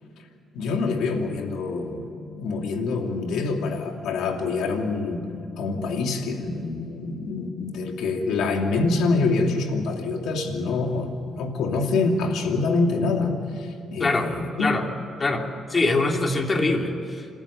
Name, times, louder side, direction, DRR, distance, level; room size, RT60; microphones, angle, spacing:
voice 1, 0.5-2.0 2.4-5.2 5.6-14.7, left 3 dB, 85° left, 3 dB, 2.8 m, -25 dB
voice 2, 15.2-17.3, left 2 dB, 30° left, 2 dB, 3.0 m, -23 dB
27.0 x 14.0 x 9.0 m, 2.7 s
cardioid pair, 90°, 0 cm